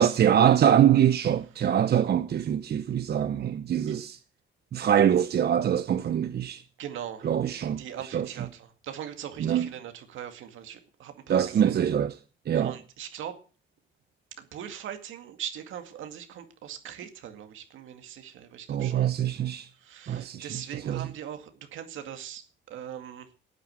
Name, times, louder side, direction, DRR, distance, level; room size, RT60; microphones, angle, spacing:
voice 1, 0.0-4.2 4.7-6.6 7.2-7.8 8.1-8.3 9.4-9.7 11.3-12.2 12.5-12.8 18.7-19.7 20.1-21.1, right 9 dB, 55° right, 0.9 m, -24 dB
voice 2, 6.8-7.3 7.8-11.8 12.5-13.4 14.4-19.1 19.8-23.3, right 9 dB, 80° right, 2.2 m, -40 dB
12.5 x 9.1 x 7.7 m
cardioid pair, 90°, 20 cm